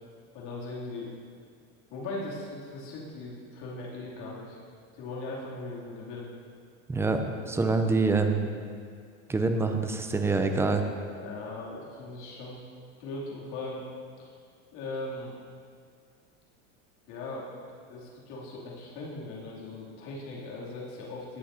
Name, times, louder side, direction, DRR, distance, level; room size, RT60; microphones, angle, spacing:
voice 1, 0.3-1.1 1.9-4.6 4.9-6.3 11.1-12.6 13.0-13.9 14.2-14.3 14.7-15.3 17.1-17.5 17.9-21.4, left 2 dB, 55° left, -4 dB, 2.8 m, -39 dB
voice 2, 6.9-8.5 9.3-10.8, right 3 dB, 5° right, 6 dB, 0.4 m, -26 dB
17.5 x 7.4 x 2.7 m, 2.1 s
supercardioid pair, 135°, 36 cm